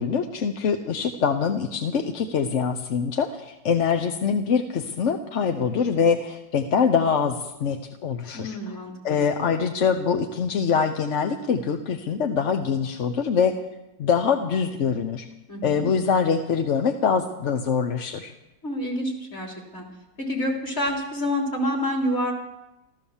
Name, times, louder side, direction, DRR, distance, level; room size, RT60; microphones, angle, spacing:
voice 1, 0.0-8.8 9.0-13.6 14.0-15.3 15.6-18.3, left 6 dB, 50° left, 6 dB, 1.0 m, -24 dB
voice 2, 8.3-9.2 15.5-15.9 18.6-19.9 20.2-22.3, equal, 35° left, -1 dB, 3.9 m, -28 dB
14.5 x 14.0 x 7.1 m, 0.94 s
omnidirectional pair, 1.9 m